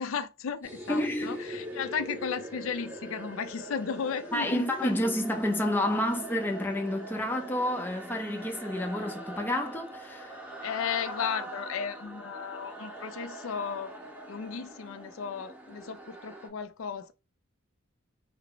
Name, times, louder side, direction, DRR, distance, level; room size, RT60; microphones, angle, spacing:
voice 1, 0.0-4.9 10.6-14.0 14.3-17.1, left 6 dB, 65° left, 0.4 m, -35 dB
sound 1, 0.6-16.5, right 1 dB, 10° right, 1.4 m, -42 dB
voice 2, 0.9-1.4 4.3-10.4, left 1 dB, 10° left, 0.6 m, -29 dB
3.9 x 2.0 x 4.3 m
head